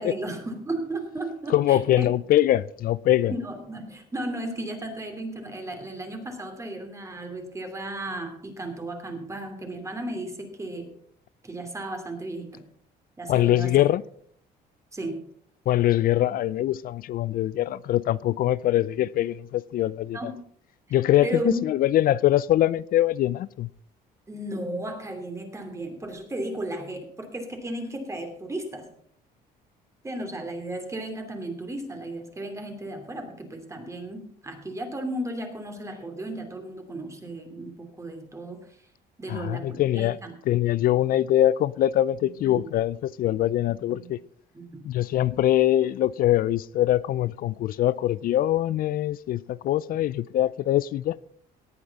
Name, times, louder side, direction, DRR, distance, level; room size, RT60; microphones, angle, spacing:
voice 1, 0.0-2.1 3.3-10.9 11.4-12.6 13.2-13.7 14.9-15.2 20.1-20.4 21.2-21.7 24.3-28.9 30.0-38.6 39.2-40.3 42.2-42.7 43.7-44.1 44.5-44.9, right 1 dB, 15° right, 2.9 m, -34 dB
voice 2, 1.5-3.3 13.3-14.0 15.7-20.2 20.9-23.7 39.3-40.2 40.5-44.2 44.8-51.2, left 13 dB, 60° left, 0.4 m, -23 dB
18.0 x 8.5 x 4.1 m
cardioid pair, 110°, 17 cm